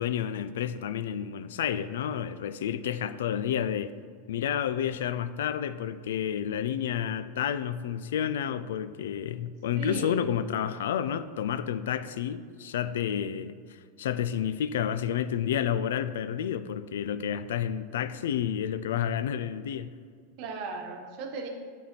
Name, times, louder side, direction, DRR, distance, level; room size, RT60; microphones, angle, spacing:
voice 1, 0.0-3.9 4.3-13.5 14.0-19.9, left 9 dB, 75° left, 14 dB, 0.3 m, -30 dB
voice 2, 9.7-10.2 20.4-21.5, right 4 dB, 55° right, 3 dB, 1.0 m, -36 dB
9.3 x 3.6 x 4.3 m, 2.1 s
hypercardioid pair, 100°, 0 cm